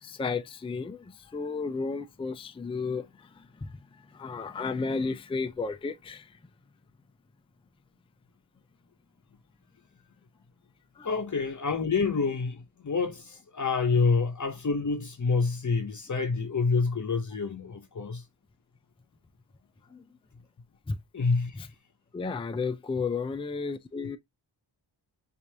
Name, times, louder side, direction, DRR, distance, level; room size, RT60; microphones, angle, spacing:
voice 1, 0.0-3.1 3.4-3.8 4.1-6.3 11.0-11.1 19.9-20.0 20.9-21.0 21.5-21.7 22.1-24.2, left 4 dB, 15° left, 0.4 m, -33 dB
voice 2, 11.0-18.2 21.1-21.6, left 4 dB, 40° left, 0.7 m, -27 dB
4.6 x 2.6 x 2.7 m
wide cardioid pair, 80°, 45 cm